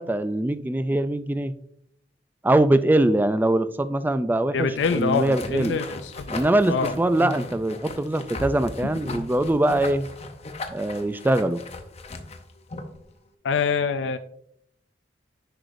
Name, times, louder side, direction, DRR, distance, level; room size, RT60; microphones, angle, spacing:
voice 1, 0.0-1.5 2.4-5.8 6.3-10.1 10.7-11.6, right 1 dB, 10° right, 13 dB, 0.3 m, -22 dB
voice 2, 4.5-6.3 6.7-6.9 8.8-9.2 13.4-14.2, left 5 dB, 90° left, 9 dB, 0.4 m, -25 dB
sound 1, 4.8-13.0, left 2 dB, 35° left, 0.7 m, -37 dB
10.0 x 4.8 x 2.5 m, 0.69 s
head